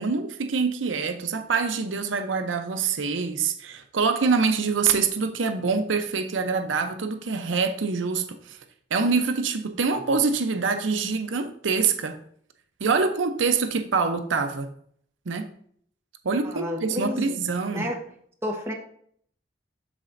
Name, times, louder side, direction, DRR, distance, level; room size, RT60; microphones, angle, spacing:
voice 1, 0.0-8.6 8.9-12.2 12.8-14.7 15.3-15.5 16.2-17.9, right 5 dB, 85° right, 0.6 m, -25 dB
voice 2, 16.4-17.4 17.7-18.0 18.4-18.7, left 1 dB, 15° right, 1.1 m, -30 dB
12.0 x 4.2 x 2.6 m
head